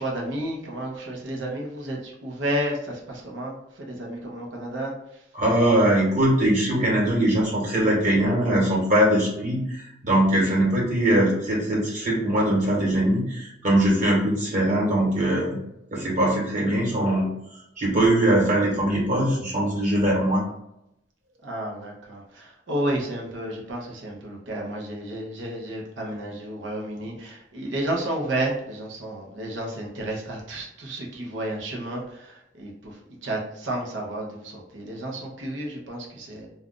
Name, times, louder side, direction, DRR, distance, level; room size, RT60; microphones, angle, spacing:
voice 1, 0.0-5.2 21.4-36.5, right 1 dB, 80° right, -1 dB, 0.8 m, -31 dB
voice 2, 5.3-15.6 15.9-17.3 17.8-20.4, right 1 dB, 40° right, -5 dB, 1.4 m, -21 dB
2.5 x 2.4 x 3.7 m, 0.83 s
head